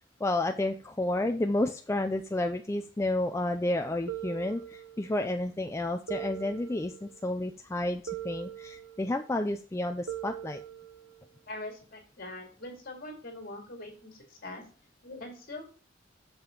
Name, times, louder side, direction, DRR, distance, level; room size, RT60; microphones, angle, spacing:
voice 1, 0.2-10.6, left 1 dB, 15° left, 6 dB, 0.4 m, -31 dB
sound 1, 4.1-5.2 6.1-7.3 8.1-9.2 10.1-11.3, right 11 dB, 65° right, 0.9 m, -41 dB
voice 2, 11.5-14.7 15.0-15.7, left 2 dB, 50° left, 2 dB, 2.6 m, -42 dB
6.9 x 5.6 x 3.7 m, 0.39 s
head